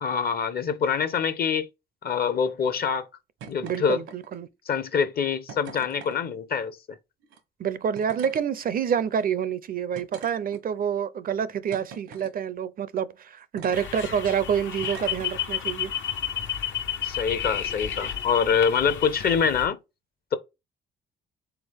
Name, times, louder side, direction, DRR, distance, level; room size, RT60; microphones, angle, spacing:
voice 1, 0.0-1.7 2.0-3.1 3.5-4.0 4.7-6.8 17.0-19.8, left 6 dB, 50° left, 0.7 m, -25 dB
sound 1, 3.4-3.8 4.1-4.5 5.5-6.2 7.2-7.4 7.9-8.4 9.1-9.2 9.9-10.8 11.7-12.3 13.6-13.9 14.8-15.3 16.4-16.5, right 6 dB, 90° right, 1.0 m, -43 dB
voice 2, 3.6-4.5 7.6-15.9, right 8 dB, 45° right, 0.4 m, -27 dB
sound 2, 13.7-19.7, left 9 dB, 75° left, 0.9 m, -32 dB
3.8 x 3.4 x 3.4 m
cardioid pair, 90°, 20 cm